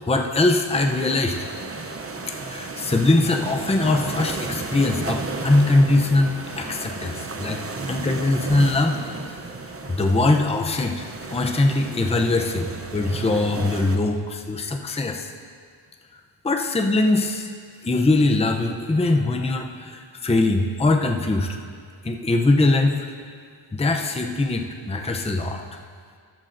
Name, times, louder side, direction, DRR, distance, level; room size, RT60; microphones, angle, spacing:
voice 1, 0.1-1.5 2.3-7.6 7.9-9.3 9.9-15.3 16.4-17.5 17.8-21.6 22.0-23.1 23.7-25.6, left 2 dB, 15° left, 4 dB, 0.6 m, -22 dB
sound 1, 0.7-14.0, right 3 dB, 30° right, 0.7 m, -33 dB
14.0 x 13.0 x 2.6 m, 2.1 s
wide cardioid pair, 115°, 48 cm